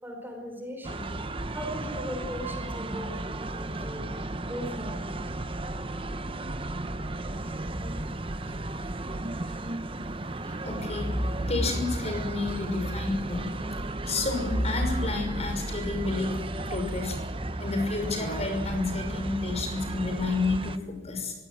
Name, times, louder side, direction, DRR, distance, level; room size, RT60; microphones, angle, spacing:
voice 1, 0.0-1.2 1.5-4.1 4.4-5.4, equal, 10° right, 3 dB, 4.6 m, -39 dB
sound 1, 0.8-20.8, right 2 dB, 30° right, 1.0 m, -34 dB
voice 2, 10.4-13.4 14.0-16.4 16.7-17.2 17.6-21.3, left 2 dB, 35° left, 5 dB, 6.0 m, -29 dB
24.0 x 17.5 x 9.4 m, 1.1 s
head